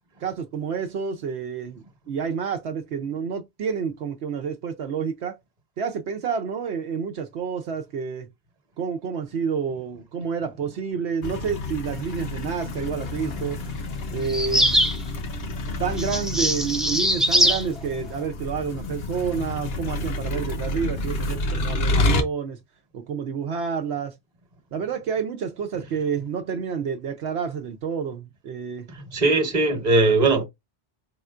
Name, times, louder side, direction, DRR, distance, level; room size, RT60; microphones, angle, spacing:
voice 1, 0.2-5.4 5.8-8.3 8.8-13.6 14.1-14.8 15.8-22.6 22.9-24.1 24.7-28.9, right 6 dB, 80° right, 0.9 m, -29 dB
sound 1, 11.2-22.2, left 2 dB, 65° left, 1.0 m, -29 dB
sound 2, 14.3-15.0 16.0-17.6, equal, ahead, 0.4 m, -21 dB
voice 2, 28.9-30.4, right 3 dB, 40° right, 1.2 m, -20 dB
4.3 x 3.5 x 2.4 m
omnidirectional pair, 1.1 m